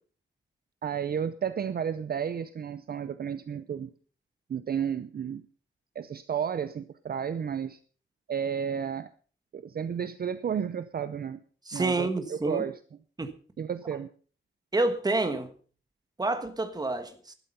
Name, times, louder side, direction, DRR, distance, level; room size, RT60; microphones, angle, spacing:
voice 1, 0.8-3.9 4.5-5.4 6.0-7.8 8.3-9.1 9.5-11.4 11.7-12.8 13.6-14.1, right 8 dB, 50° right, 0.6 m, -32 dB
voice 2, 11.7-12.7 13.2-13.3 14.7-15.5 16.2-17.3, right 2 dB, 20° right, 1.5 m, -28 dB
12.5 x 12.0 x 5.5 m
wide cardioid pair, 170°, 20 cm